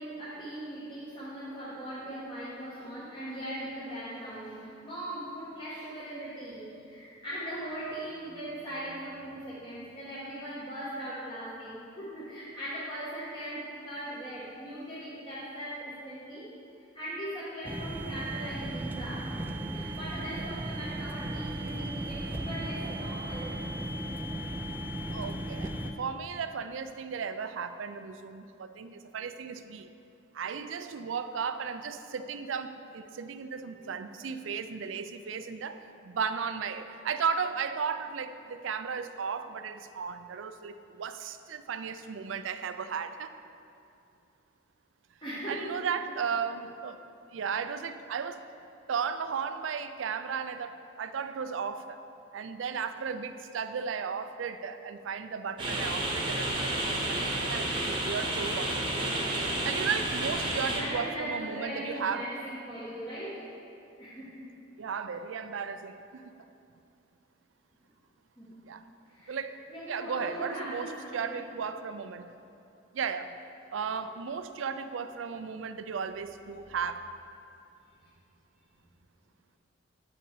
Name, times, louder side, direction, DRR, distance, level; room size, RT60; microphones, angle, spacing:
voice 1, 0.0-16.5 16.9-19.4 19.7-23.6 23.8-23.9 33.7-33.9 45.2-45.9 60.8-63.4 64.0-64.5 68.4-68.7 69.1-69.4 69.7-71.4 74.0-74.1 78.0-78.1, right 1 dB, 25° left, -11 dB, 1.4 m, -39 dB
sound 1, 17.6-25.9, right 1 dB, 10° right, 0.4 m, -36 dB
voice 2, 25.1-25.7 26.0-29.9 30.3-43.3 45.5-47.0 47.3-48.4 48.9-52.0 52.3-58.9 59.6-62.3 64.8-66.3 68.6-68.8 69.3-69.5 69.9-72.4 72.9-73.4 73.7-77.0, right 6 dB, 75° right, 10 dB, 0.4 m, -35 dB
sound 2, 55.6-60.8, right 1 dB, 25° right, 1.1 m, -31 dB
8.4 x 5.9 x 4.8 m, 2.6 s
head